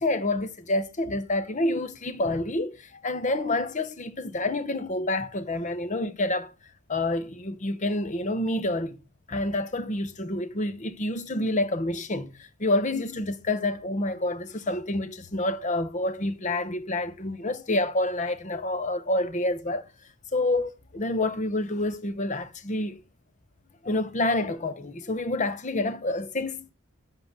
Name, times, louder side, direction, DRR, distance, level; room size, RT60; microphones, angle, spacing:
voice 1, 0.0-6.5 6.9-9.0 9.3-19.9 20.3-23.0 23.8-26.7, left 2 dB, 35° left, 0.9 m, -28 dB
11.0 x 3.9 x 7.4 m
head